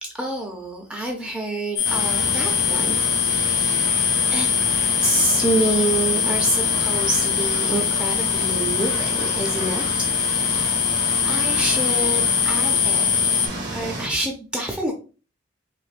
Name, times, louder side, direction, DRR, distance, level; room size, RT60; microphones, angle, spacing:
voice 1, 0.0-3.1 3.4-3.8 4.3-4.5 5.0-10.8 11.2-13.1 13.7-14.9, right 1 dB, 5° right, 0 dB, 0.4 m, -27 dB
sound 1, 1.8-13.5, left 8 dB, 50° left, 0.5 m, -22 dB
sound 2, 1.8-14.1, right 2 dB, 55° right, 1.0 m, -30 dB
4.0 x 2.5 x 2.5 m, 0.35 s
head